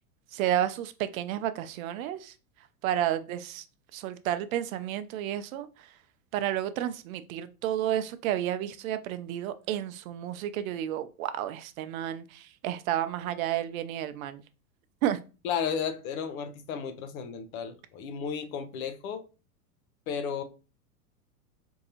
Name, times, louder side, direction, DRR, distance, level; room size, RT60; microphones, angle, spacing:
voice 1, 0.3-2.3 2.8-3.7 3.9-5.9 6.3-14.4 15.0-15.2, right 11 dB, 65° right, 0.6 m, -31 dB
voice 2, 15.4-19.2 20.1-20.4, left 7 dB, 65° left, 0.7 m, -33 dB
3.8 x 2.7 x 2.8 m
hypercardioid pair, 115°, 46 cm